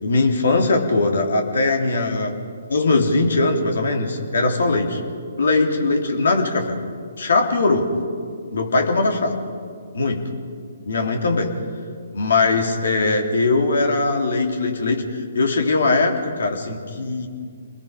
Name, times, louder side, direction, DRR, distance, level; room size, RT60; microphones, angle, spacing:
voice 1, 0.0-2.4 2.7-5.0 5.4-6.7 7.2-7.9 8.5-9.3 9.9-10.2 10.8-11.5 12.1-17.3, left 3 dB, 65° left, 3 dB, 3.4 m, -20 dB
28.0 x 21.0 x 5.4 m, 2.1 s
figure-of-eight pair, 130°, 0 cm